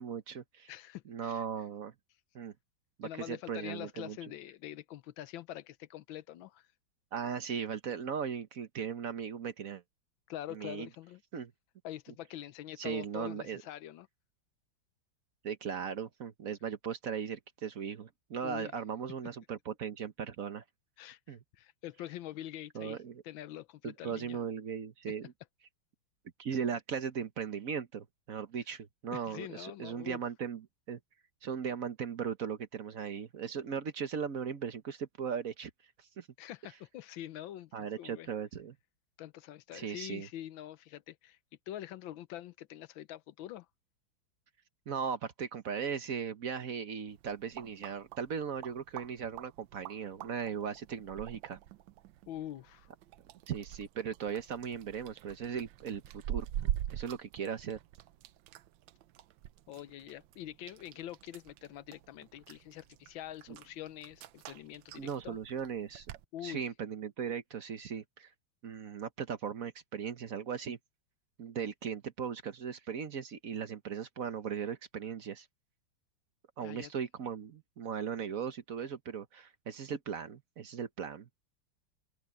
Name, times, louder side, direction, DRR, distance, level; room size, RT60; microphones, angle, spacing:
voice 1, 0.0-0.7 1.1-1.9 2.3-2.5 3.0-4.2 7.1-9.8 10.5-10.9 11.3-11.5 12.8-13.6 15.4-20.6 21.3-21.4 22.7-23.2 23.8-25.3 26.4-31.0 31.4-35.7 36.0-36.3 37.7-38.8 39.7-40.3 44.9-51.6 53.5-57.8 63.5-63.6 65.0-66.1 66.4-68.3 68.6-70.8 71.4-75.5 76.6-81.3, right 7 dB, 50° right, 1.2 m, -38 dB
voice 2, 0.7-1.4 3.0-6.7 10.3-11.2 11.8-14.1 18.4-18.7 21.0-24.4 29.1-30.2 36.4-38.3 39.2-41.4 41.7-43.7 52.3-52.9 59.7-65.4 66.3-66.6 76.6-76.9, left 13 dB, 85° left, 1.5 m, -45 dB
sound 1, 47.1-66.2, right 11 dB, 80° right, 1.4 m, -45 dB
omnidirectional pair, 2.1 m